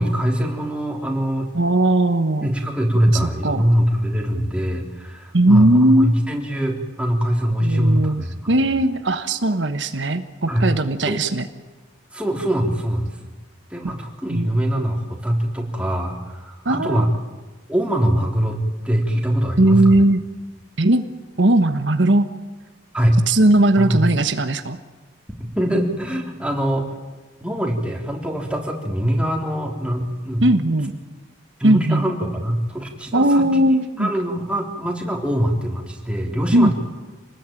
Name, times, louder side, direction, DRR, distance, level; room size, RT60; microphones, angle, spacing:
voice 1, 0.0-1.5 2.4-8.5 10.5-10.7 11.0-11.1 12.1-13.1 13.7-17.1 17.7-20.0 22.9-23.2 23.8-24.0 25.5-27.0 27.4-30.4 31.6-33.4 34.0-36.7, equal, 5° right, 1 dB, 3.9 m, -22 dB
voice 2, 1.5-2.5 3.4-3.6 5.3-6.2 7.6-11.4 14.3-14.5 16.6-17.0 19.6-20.2 20.8-21.0 21.4-22.3 23.3-24.8 30.4-31.0 31.6-32.1 33.1-34.1 36.5-36.7, right 1 dB, 70° right, 9 dB, 1.3 m, -18 dB
27.5 x 19.5 x 9.1 m, 1.3 s
head